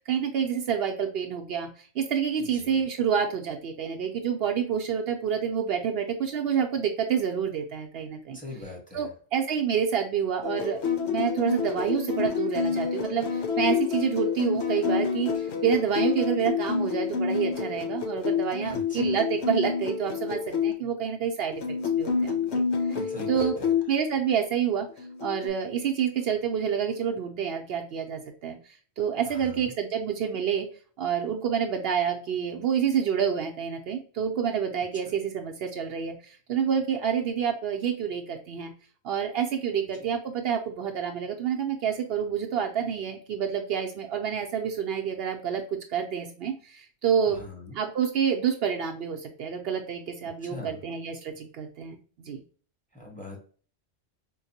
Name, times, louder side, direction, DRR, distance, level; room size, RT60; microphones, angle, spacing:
voice 1, 0.0-8.4 8.9-10.8 11.1-23.5 23.9-24.9 25.2-30.7 31.0-38.7 39.0-45.6 45.9-47.4 47.7-52.4, right 7 dB, 70° right, 3 dB, 0.7 m, -28 dB
voice 2, 2.4-2.8 8.3-9.1 18.6-19.2 22.9-23.7 29.3-29.7 47.3-47.8 50.4-50.8 52.9-53.4, left 2 dB, 10° left, -1 dB, 1.0 m, -42 dB
sound 1, 10.4-20.7 21.5-23.8 25.0-25.5, left 6 dB, 90° left, 1.0 m, -28 dB
4.5 x 2.1 x 2.7 m, 0.41 s
omnidirectional pair, 1.1 m